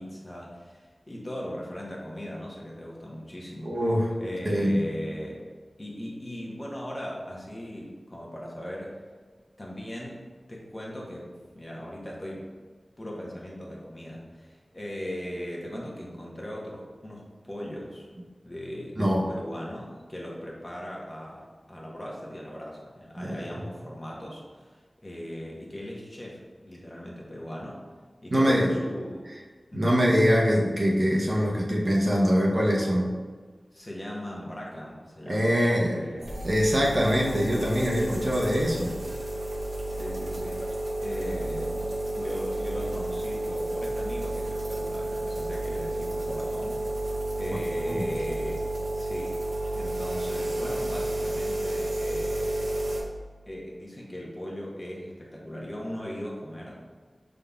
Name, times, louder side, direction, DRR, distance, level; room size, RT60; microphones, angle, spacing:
voice 1, 0.0-3.8 4.2-5.4 5.8-9.0 9.6-12.5 13.0-18.1 18.4-27.8 28.2-29.3 29.7-30.0 33.7-36.3 39.8-41.8 42.2-47.0 47.4-49.4 49.7-52.8 53.5-56.8, equal, 30° left, -4 dB, 1.0 m, -38 dB
voice 2, 3.6-4.1 4.4-4.8 19.0-19.2 23.2-23.4 28.3-28.7 29.7-33.1 35.3-36.0 36.4-39.0 47.8-48.1, equal, 45° right, -3 dB, 0.8 m, -23 dB
sound 1, 36.2-53.0, right 1 dB, 70° right, 0.8 m, -31 dB
5.2 x 3.8 x 2.3 m, 1.5 s
wide cardioid pair, 65°, 0 cm